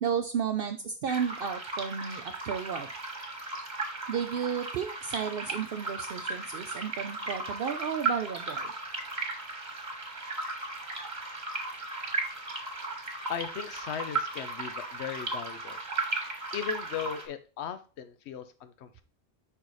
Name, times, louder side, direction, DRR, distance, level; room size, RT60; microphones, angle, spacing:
voice 1, 0.0-2.9 4.1-8.7, right 7 dB, 65° right, 5 dB, 0.7 m, -33 dB
sound 1, 1.1-17.3, right 3 dB, 45° right, 1.4 m, -36 dB
voice 2, 13.3-15.8 16.5-19.0, left 8 dB, 85° left, 10 dB, 0.9 m, -37 dB
5.5 x 4.0 x 4.7 m, 0.36 s
omnidirectional pair, 1.1 m